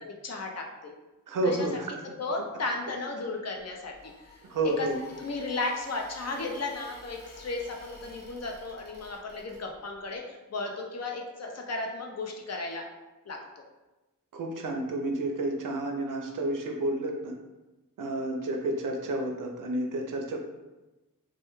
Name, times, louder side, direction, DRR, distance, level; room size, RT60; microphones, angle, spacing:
voice 1, 0.0-0.9 1.4-1.7 2.2-4.9 5.2-12.9 13.3-13.6, left 3 dB, 50° left, 1 dB, 0.4 m, -35 dB
voice 2, 1.3-1.9 4.5-5.0 14.3-17.3 18.0-20.4, right 1 dB, 65° right, 2 dB, 0.5 m, -30 dB
sound 1, 3.6-10.0, left 1 dB, 30° left, 0.9 m, -50 dB
2.2 x 2.1 x 2.9 m, 1.1 s
wide cardioid pair, 85°, 34 cm